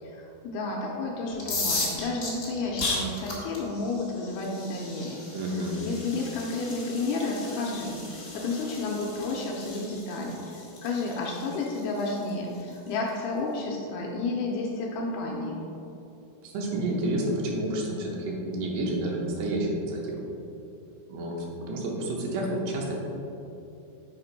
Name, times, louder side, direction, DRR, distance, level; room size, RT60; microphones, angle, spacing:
voice 1, 0.0-5.3 5.8-15.6, left 3 dB, 80° left, -2 dB, 2.3 m, -31 dB
sound 1, 1.3-13.1, left 3 dB, 60° left, 1.2 m, -36 dB
voice 2, 5.3-5.8 16.4-20.2 21.1-23.0, right 1 dB, 80° right, -2 dB, 3.2 m, -30 dB
7.6 x 5.1 x 4.0 m, 2.9 s
omnidirectional pair, 4.9 m